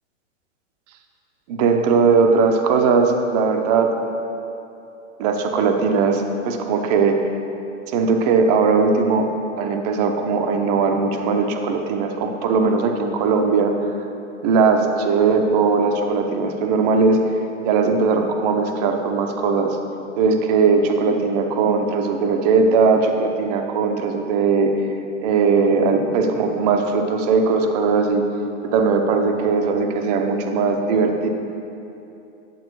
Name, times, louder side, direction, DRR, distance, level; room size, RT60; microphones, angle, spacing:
voice 1, 1.5-3.9 5.2-7.2 7.9-9.3 9.6-13.7 14.4-17.2 17.6-19.8 20.2-24.7 25.2-28.2 28.7-31.3, right 4 dB, 30° right, 4 dB, 0.8 m, -19 dB
11.0 x 7.3 x 4.6 m, 2.8 s
hypercardioid pair, 155°, 38 cm